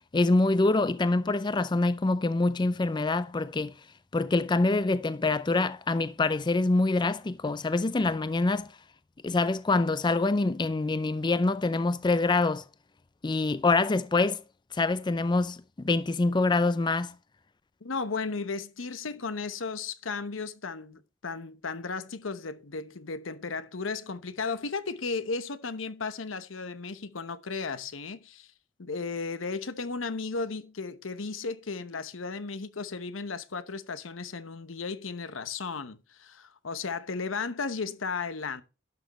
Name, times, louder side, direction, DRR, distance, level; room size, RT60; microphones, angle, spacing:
voice 1, 0.1-3.7 4.1-8.7 9.2-12.6 13.2-14.4 14.7-17.1, left 3 dB, 25° left, 0.4 m, -25 dB
voice 2, 17.8-28.5 28.8-38.6, left 4 dB, 85° left, 0.9 m, -35 dB
11.5 x 6.3 x 4.1 m
head